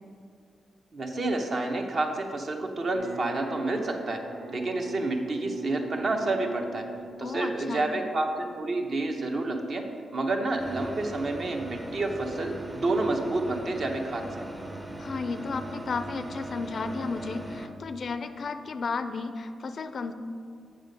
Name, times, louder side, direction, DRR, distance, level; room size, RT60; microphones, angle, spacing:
voice 1, 0.9-4.2 4.5-6.8 7.2-9.8 10.1-14.4, right 2 dB, 45° right, 3 dB, 1.0 m, -29 dB
sound 1, 2.9-14.0, right 3 dB, 80° right, 1.9 m, -44 dB
voice 2, 7.2-7.9 15.0-20.1, left 4 dB, 45° left, 9 dB, 0.4 m, -33 dB
sound 2, 10.6-17.7, right 1 dB, 5° right, 0.6 m, -39 dB
8.7 x 6.5 x 5.2 m, 2.3 s
wide cardioid pair, 145°, 0 cm